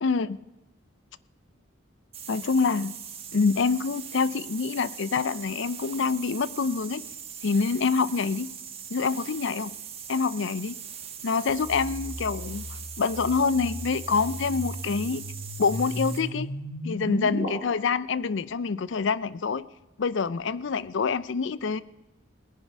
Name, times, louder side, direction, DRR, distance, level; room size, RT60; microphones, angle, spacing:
voice 1, 0.0-0.4 2.3-2.9 3.3-7.0 7.4-8.5 8.9-9.7 10.1-10.8 11.2-12.6 13.0-15.2 15.6-16.5 16.8-19.6 20.0-21.8, left 5 dB, 65° left, 18 dB, 0.5 m, -26 dB
sound 1, 2.1-16.3, right 8 dB, 30° right, 1.3 m, -41 dB
sound 2, 11.5-17.5, left 1 dB, 90° left, 5.7 m, -35 dB
18.5 x 10.0 x 5.4 m, 1.1 s
head